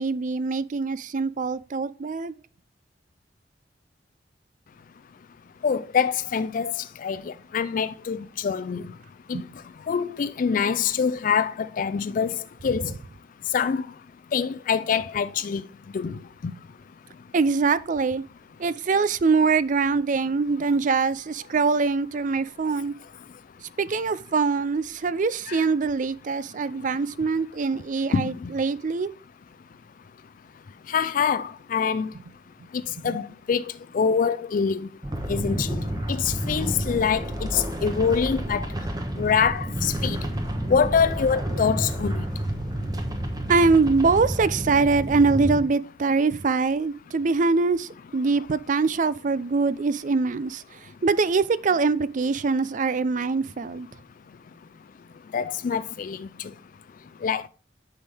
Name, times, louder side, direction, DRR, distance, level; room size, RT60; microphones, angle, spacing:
voice 1, 0.0-2.3 9.3-9.4 12.7-12.9 17.3-18.2 18.6-22.9 23.8-29.1 43.5-50.6 51.0-53.9, right 4 dB, 45° right, 0.4 m, -23 dB
voice 2, 5.6-8.8 9.3-9.4 9.9-12.8 13.5-13.9 14.3-15.6 15.9-16.2 25.5-25.7 28.1-28.5 30.9-32.1 33.0-33.6 33.9-34.9 35.3-35.8 36.1-38.6 39.2-40.2 40.7-42.2 55.3-56.3 57.2-57.4, left 6 dB, 50° left, 0.4 m, -25 dB
sound 1, 35.0-45.6, right 1 dB, 20° right, 1.1 m, -30 dB
8.6 x 5.8 x 3.4 m
head